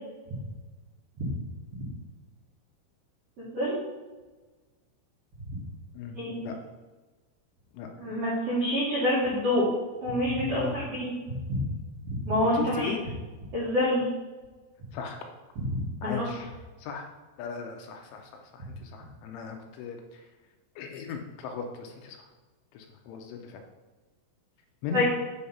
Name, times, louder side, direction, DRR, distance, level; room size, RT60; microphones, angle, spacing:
voice 1, 3.4-3.8 6.1-6.4 8.0-9.6 10.0-11.6 12.2-12.9 13.5-14.0 15.6-15.7 16.0-16.3 24.9-25.0, left 1 dB, 75° right, -7 dB, 1.3 m, -27 dB
voice 2, 5.9-6.6 7.7-7.9 10.5-10.8 12.5-13.0 14.9-15.2 16.0-16.5 16.8-17.1 17.4-20.3 20.8-22.3 22.7-23.6 24.8-25.1, left 6 dB, 80° left, 3 dB, 3.0 m, -37 dB
7.8 x 5.1 x 5.7 m, 1.3 s
omnidirectional pair, 6.0 m